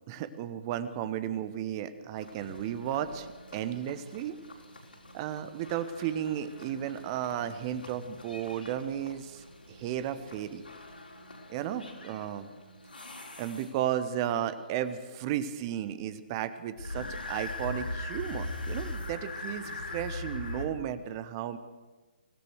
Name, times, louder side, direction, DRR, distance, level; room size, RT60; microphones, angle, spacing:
voice 1, 0.1-4.4 5.1-10.6 11.5-12.5 13.4-21.6, right 10 dB, 25° right, 12 dB, 1.1 m, -34 dB
sound 1, 2.2-14.1 16.8-20.6, left 2 dB, 75° left, 5.5 m, -42 dB
24.5 x 16.5 x 6.5 m, 1.3 s
figure-of-eight pair, 135°, 5 cm